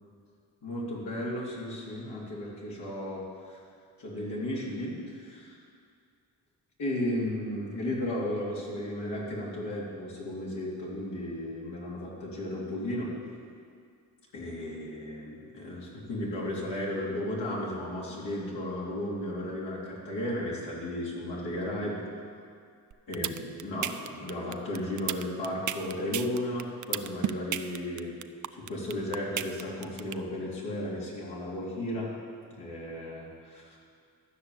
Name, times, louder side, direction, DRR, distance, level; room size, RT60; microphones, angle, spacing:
voice 1, 0.6-3.6 4.0-5.6 6.8-13.1 14.3-22.0 23.1-28.2 28.5-32.1 32.6-33.8, left 1 dB, 70° left, -4 dB, 3.4 m, -34 dB
sound 1, 22.9-30.1, right 10 dB, 45° right, 0.6 m, -32 dB
12.5 x 6.1 x 8.6 m, 2.2 s
supercardioid pair, 65°, 42 cm